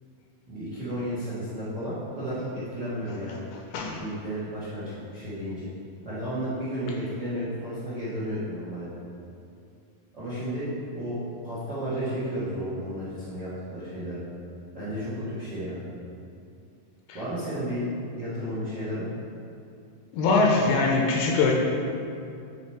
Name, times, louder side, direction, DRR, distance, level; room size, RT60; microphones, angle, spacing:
voice 1, 0.5-3.4 3.9-5.7 6.0-8.9 10.1-14.2 14.7-15.8 17.1-17.9 18.2-19.1, equal, 50° right, -11 dB, 1.2 m, -33 dB
voice 2, 20.1-21.5, left 3 dB, 80° left, -1 dB, 2.5 m, -22 dB
8.8 x 4.0 x 4.3 m, 2.5 s
omnidirectional pair, 4.7 m